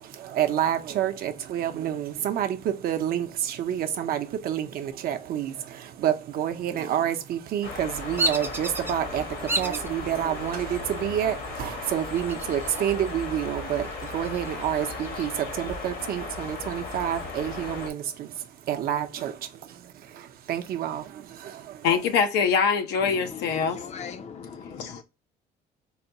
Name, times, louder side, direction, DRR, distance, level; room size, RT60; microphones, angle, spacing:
voice 1, 0.0-19.4 19.8-21.9, right 10 dB, 60° right, 0.6 m, -29 dB
sound 1, 7.6-17.9, left 4 dB, 60° left, 1.1 m, -36 dB
Bird vocalization bird call bird song, 8.2-8.9 9.5-9.9 10.5-11.0 12.2-12.9 13.3-13.4 13.8-15.2, right 2 dB, 15° right, 0.3 m, -30 dB
voice 2, 21.8-23.8 24.8-25.0, left 6 dB, 85° left, 0.7 m, -23 dB
voice 3, 23.0-25.0, left 6 dB, 40° left, 0.6 m, -39 dB
4.0 x 2.2 x 2.7 m
cardioid pair, 110°, 17 cm